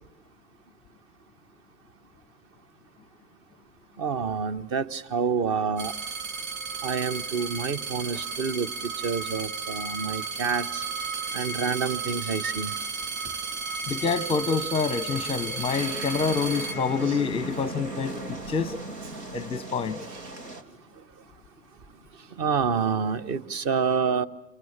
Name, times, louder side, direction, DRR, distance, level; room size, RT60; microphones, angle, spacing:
voice 1, 4.0-5.9 6.8-8.7 9.0-10.8 11.3-12.7 17.1-17.2 22.4-24.3, right 6 dB, 25° right, 1.2 m, -28 dB
sound 1, 5.8-17.5 18.2-18.8, right 4 dB, 50° right, 5.1 m, -34 dB
voice 2, 13.9-18.7 19.3-20.0, left 5 dB, 10° left, 1.0 m, -27 dB
sound 2, 15.1-20.6, right 2 dB, 75° right, 3.2 m, -38 dB
29.5 x 27.0 x 7.3 m
figure-of-eight pair, 110°, 50 cm